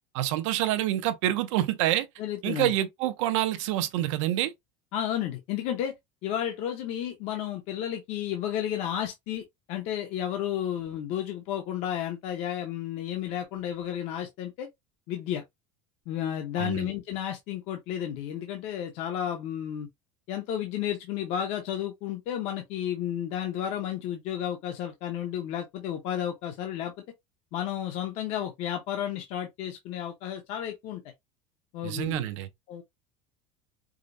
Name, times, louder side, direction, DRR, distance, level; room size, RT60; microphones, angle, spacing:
voice 1, 0.1-2.1 2.4-4.5 16.6-16.9 31.8-32.5, right 13 dB, 80° right, 0.6 m, -27 dB
voice 2, 2.2-2.7 4.9-5.9 6.2-9.4 9.7-14.7 15.1-15.4 16.1-19.9 20.3-26.9 27.5-31.0 31.7-32.3 32.7-32.8, left 10 dB, 40° left, 0.6 m, -32 dB
4.9 x 2.1 x 2.5 m
cardioid pair, 175°, 16 cm